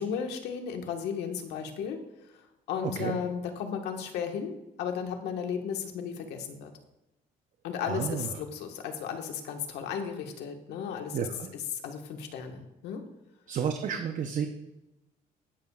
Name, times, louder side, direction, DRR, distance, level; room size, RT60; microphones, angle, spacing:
voice 1, 0.0-2.0 2.3-4.5 4.8-6.7 7.6-13.0, left 7 dB, 85° left, 4 dB, 1.5 m, -35 dB
voice 2, 7.9-8.3 11.1-11.5 13.5-14.5, right 7 dB, 50° right, 6 dB, 0.8 m, -31 dB
19.5 x 7.1 x 2.4 m, 0.95 s
cardioid pair, 110°, 17 cm